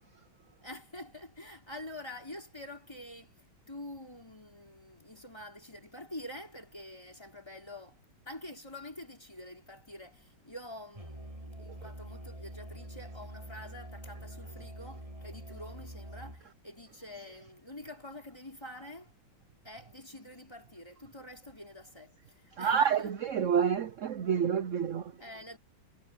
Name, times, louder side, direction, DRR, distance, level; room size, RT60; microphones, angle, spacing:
voice 1, 0.6-3.4 3.7-8.0 8.3-19.1 19.6-23.1 25.2-25.6, left 1 dB, 10° left, 4.6 m, -47 dB
Musical instrument, 11.0-16.5, right 1 dB, 15° right, 7.6 m, -45 dB
voice 2, 22.6-25.1, right 8 dB, 80° right, 0.6 m, -28 dB
omnidirectional pair, 2.2 m